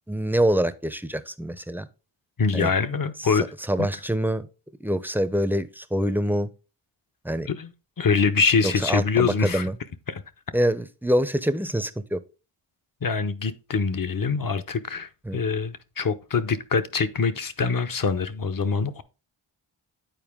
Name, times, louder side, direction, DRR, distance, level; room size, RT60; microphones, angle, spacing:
voice 1, 0.1-1.9 2.5-2.7 3.2-4.5 4.8-6.5 7.2-7.5 8.6-9.8 10.5-12.2 15.3-15.4, equal, 5° right, 0.6 m, -25 dB
voice 2, 2.4-3.4 3.8-3.9 7.5-7.7 8.0-9.7 10.1-10.2 13.0-19.0, left 5 dB, 45° left, 0.8 m, -24 dB
9.2 x 4.4 x 3.6 m
cardioid pair, 40°, 50 cm